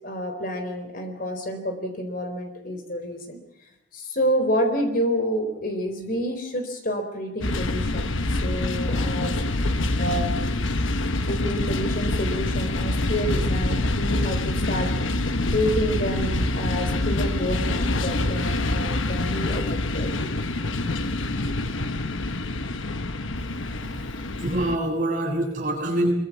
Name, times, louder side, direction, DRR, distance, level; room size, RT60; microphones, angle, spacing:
voice 1, 0.0-3.4 3.9-9.3 10.0-10.4 11.2-14.9 15.5-20.1, equal, 45° left, 6 dB, 4.2 m, -28 dB
sound 1, 7.4-24.8, left 2 dB, 85° left, 1.3 m, -26 dB
voice 2, 23.7-26.1, right 1 dB, 40° right, 0 dB, 7.1 m, -26 dB
23.5 x 23.0 x 7.4 m, 0.82 s
head